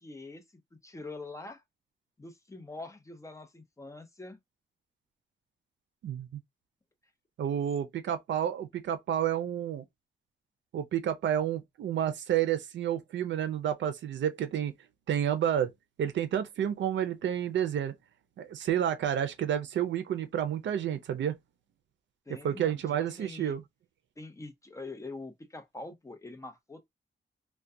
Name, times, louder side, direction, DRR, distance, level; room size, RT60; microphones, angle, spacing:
voice 1, 0.0-1.6 2.2-4.4 22.3-23.6 24.2-26.9, left 2 dB, 15° left, 0.5 m, -44 dB
voice 2, 7.4-9.8 10.7-14.7 15.1-15.7 16.0-17.9 18.4-21.4 22.4-23.6, right 10 dB, 90° right, 0.4 m, -30 dB
2.3 x 2.1 x 2.6 m
wide cardioid pair, 135°, 18 cm